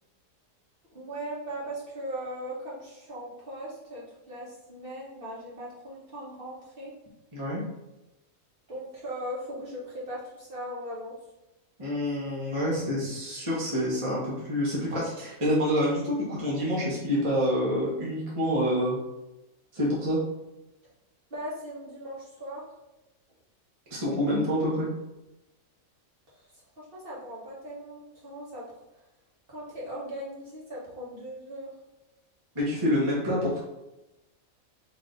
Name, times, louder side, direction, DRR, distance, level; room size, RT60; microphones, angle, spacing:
voice 1, 0.9-6.9 8.7-11.1 21.3-22.7 26.3-26.5 26.8-28.8 29.5-31.7, right 1 dB, 45° right, -7 dB, 1.4 m, -39 dB
voice 2, 11.8-19.0 19.7-20.2 23.9-24.9 32.5-33.6, equal, 25° right, -6 dB, 1.1 m, -27 dB
4.0 x 2.8 x 3.8 m, 0.96 s
omnidirectional pair, 1.4 m